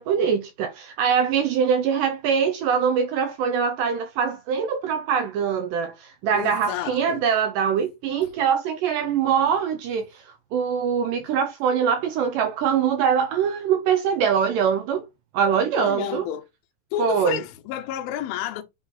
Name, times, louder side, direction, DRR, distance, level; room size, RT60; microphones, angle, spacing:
voice 1, 0.0-15.1 15.3-16.3 17.0-17.4, right 7 dB, 90° right, 1.9 m, -23 dB
voice 2, 6.3-7.3 15.8-16.5 16.9-18.6, left 11 dB, 80° left, 2.5 m, -30 dB
8.8 x 3.0 x 3.6 m
omnidirectional pair, 4.5 m